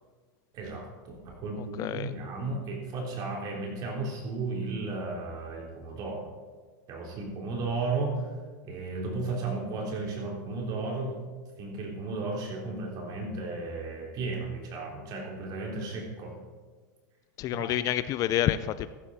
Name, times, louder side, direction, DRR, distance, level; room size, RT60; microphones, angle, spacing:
voice 1, 0.5-6.3 6.9-8.2 8.6-11.2 11.6-16.3 17.5-17.7, right 3 dB, 40° right, -1 dB, 3.6 m, -34 dB
voice 2, 1.6-2.1 17.4-18.9, left 12 dB, 35° left, 14 dB, 0.4 m, -28 dB
14.0 x 11.5 x 4.2 m, 1.4 s
supercardioid pair, 135°, 10 cm